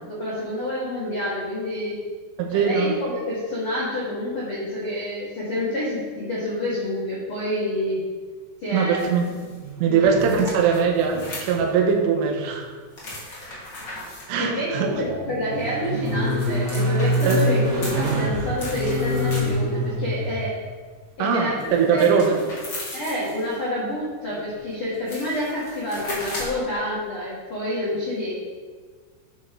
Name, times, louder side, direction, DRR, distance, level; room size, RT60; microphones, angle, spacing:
voice 1, 0.0-1.9 2.5-8.0 8.6-9.1 10.0-10.3 14.4-20.5 21.2-22.0 22.9-28.3, left 1 dB, 75° left, -8 dB, 1.2 m, -28 dB
voice 2, 2.4-3.0 8.7-9.3 9.8-12.7 14.3-14.9 17.3-17.4 21.2-22.4, right 6 dB, 80° right, 2 dB, 3.5 m, -21 dB
sound 1, 9.0-9.6 10.2-11.9 12.9-14.3 15.8-19.8 21.6-23.6 24.6-24.7 24.9-26.7, left 1 dB, 50° left, 1.3 m, -37 dB
sound 2, 9.6-10.5 10.8-11.6 11.9-12.0 14.5-20.3 23.2-23.3, equal, 50° right, 2.4 m, -26 dB
11.5 x 6.2 x 3.7 m, 1.5 s
omnidirectional pair, 5.8 m